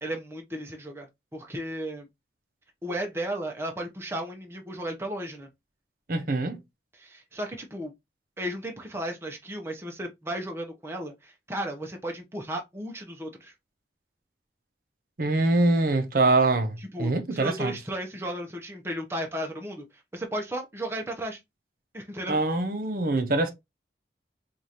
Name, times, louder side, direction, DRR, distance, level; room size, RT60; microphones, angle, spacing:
voice 1, 0.0-2.1 2.8-5.5 7.0-7.9 8.4-13.5 16.9-19.8 20.1-21.4 21.9-22.4, right 1 dB, 15° right, 0.6 m, -34 dB
voice 2, 6.1-6.6 15.2-17.7 22.3-23.5, right 2 dB, 50° right, 0.7 m, -24 dB
4.7 x 2.4 x 2.7 m
head